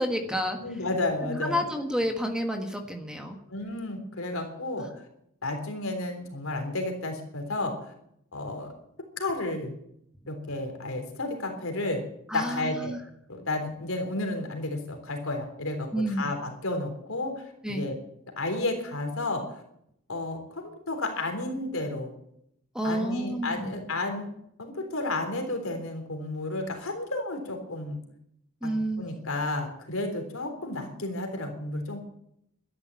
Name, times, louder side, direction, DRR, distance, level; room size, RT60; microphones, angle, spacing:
voice 1, 0.0-0.6 1.2-3.4 4.8-4.9 12.3-13.0 15.9-16.3 17.6-17.9 22.7-23.8 28.6-29.1, equal, 5° right, 4 dB, 1.5 m, -30 dB
voice 2, 0.6-1.6 3.5-4.9 5.4-7.8 8.3-8.7 9.2-9.7 10.3-12.0 12.3-12.9 13.3-18.0 18.4-19.4 20.1-22.1 22.8-24.3 24.6-28.0 28.6-28.7 29.0-32.0, left 2 dB, 70° left, 5 dB, 3.6 m, -32 dB
13.0 x 10.5 x 8.3 m, 0.75 s
head